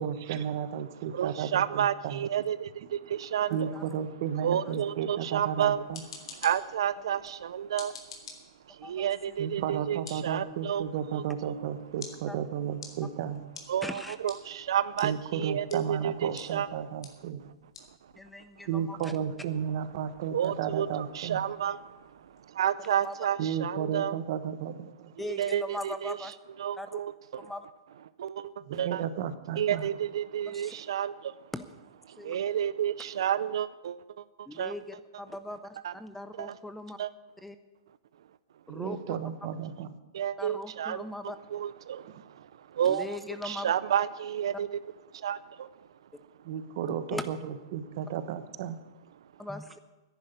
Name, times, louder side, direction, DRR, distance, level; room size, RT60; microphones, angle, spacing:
voice 1, 0.0-2.2 3.5-6.0 9.4-13.4 15.0-17.5 18.7-21.5 23.4-25.1 28.7-29.9 30.7-30.8 38.7-39.9 46.4-48.8, right 8 dB, 45° right, 12 dB, 1.2 m, -33 dB
voice 2, 1.1-3.7 4.4-5.8 6.2-8.0 8.7-10.8 11.1-11.5 13.7-16.8 20.3-24.2 25.3-26.2 26.6-27.5 28.2-29.1 29.6-31.3 32.1-34.7 35.8-35.9 36.4-36.5 37.0-37.1 40.1-41.0 41.5-43.2 43.4-44.7 45.1-45.7, right 9 dB, 75° right, 15 dB, 0.6 m, -31 dB
voice 3, 3.5-3.8 4.6-4.7 7.1-7.2 8.8-9.1 12.3-12.4 13.8-14.2 18.2-19.1 23.0-23.1 25.2-26.3 26.8-27.0 27.4-27.7 30.5-30.7 31.5-31.6 32.2-32.4 34.5-37.0 37.4-37.6 38.7-39.0 40.4-41.4 42.9-43.7 47.1-47.2 49.4-49.8, left 1 dB, 5° left, 11 dB, 0.5 m, -39 dB
sound 1, 5.7-22.5, left 5 dB, 75° left, 3.2 m, -52 dB
11.0 x 10.5 x 9.3 m, 1.1 s
supercardioid pair, 165°, 3 cm